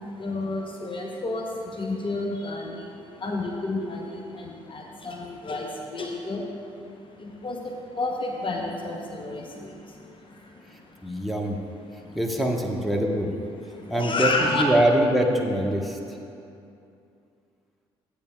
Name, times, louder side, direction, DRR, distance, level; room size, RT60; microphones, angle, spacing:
voice 1, 0.0-11.3 11.9-12.2 13.7-14.6, left 2 dB, 35° left, 1 dB, 0.9 m, -31 dB
voice 2, 11.0-11.6 12.1-13.3 13.9-16.0, right 1 dB, ahead, 0 dB, 1.1 m, -23 dB
12.5 x 8.4 x 2.4 m, 2.7 s
figure-of-eight pair, 45°, 14 cm